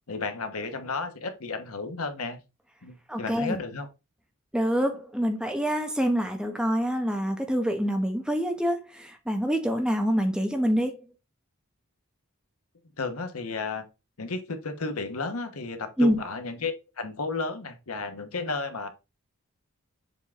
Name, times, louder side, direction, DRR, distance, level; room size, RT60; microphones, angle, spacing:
voice 1, 0.1-2.4 2.8-3.9 13.0-13.8 14.2-18.9, left 3 dB, 80° left, 1.1 m, -33 dB
voice 2, 3.1-3.6 4.5-11.0 16.0-16.2, equal, 5° right, 0.9 m, -26 dB
7.3 x 3.7 x 3.6 m
head